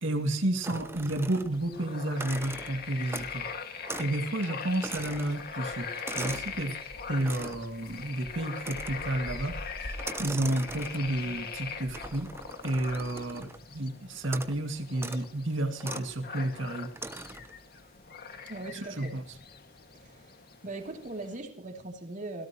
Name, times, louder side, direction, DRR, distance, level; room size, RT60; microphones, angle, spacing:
voice 1, 0.0-3.4 4.0-5.9 6.1-6.7 7.1-12.3 12.6-16.9 19.0-19.2, right 1 dB, 65° right, 6 dB, 2.2 m, -31 dB
sound 1, 0.6-1.7 2.1-3.5 3.9-4.2 4.4-6.6 7.2-7.7 8.6-9.1 9.9-11.2 11.9-13.7 14.2-14.6 14.9-15.3 15.8-16.1 17.0-17.5, right 2 dB, 10° right, 1.0 m, -41 dB
sound 2, 1.5-21.4, left 5 dB, 50° left, 2.0 m, -41 dB
voice 2, 18.5-19.2 19.9-20.3 20.6-22.5, right 2 dB, 40° right, 3 dB, 2.8 m, -40 dB
26.0 x 17.5 x 3.0 m, 0.40 s
head